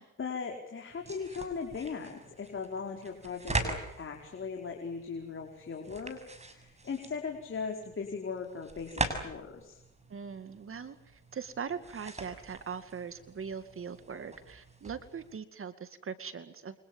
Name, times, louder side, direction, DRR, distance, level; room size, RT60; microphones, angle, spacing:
voice 1, 0.2-6.2 6.5-9.8, left 5 dB, 40° left, 2 dB, 5.0 m, -38 dB
sound 1, 0.9-15.4, right 2 dB, 20° right, 6.6 m, -42 dB
voice 2, 10.1-16.8, right 6 dB, 45° right, 11 dB, 2.3 m, -41 dB
29.0 x 25.5 x 7.3 m, 0.82 s
cardioid pair, 90°, 30 cm